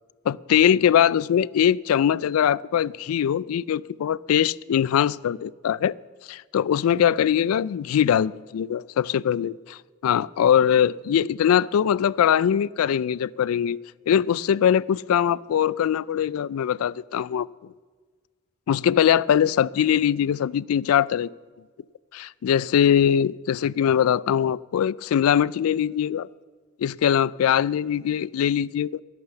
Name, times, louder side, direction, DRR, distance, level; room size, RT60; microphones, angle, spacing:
voice 1, 0.3-5.9 6.3-13.8 14.1-17.5 18.7-21.3 22.1-26.3 26.8-29.0, left 9 dB, 85° left, 0.3 m, -22 dB
13.0 x 11.0 x 7.0 m
head